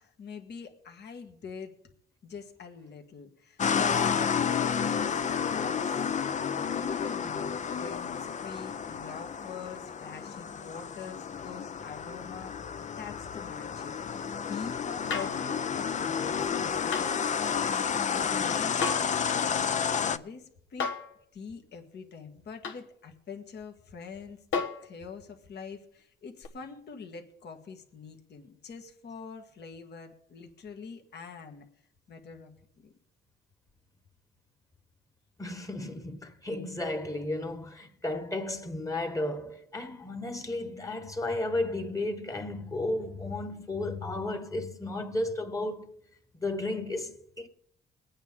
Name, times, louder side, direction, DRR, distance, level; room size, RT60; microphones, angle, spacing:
voice 1, 0.0-1.7 2.2-6.3 6.7-12.6 13.0-20.9 21.3-31.7 32.1-32.5 32.8-32.9, left 5 dB, 60° left, 1.7 m, -45 dB
sound 1, 3.6-20.2, left 7 dB, 35° left, 0.6 m, -31 dB
sound 2, 15.1-15.4 16.9-17.1 18.8-19.2 20.8-21.1 22.6-22.8 24.5-24.9 26.4-26.5, left 5 dB, 75° left, 1.4 m, -32 dB
voice 2, 35.4-45.9 46.4-47.5, left 2 dB, 15° left, 1.4 m, -33 dB
22.0 x 8.9 x 3.6 m
cardioid pair, 90°, 20 cm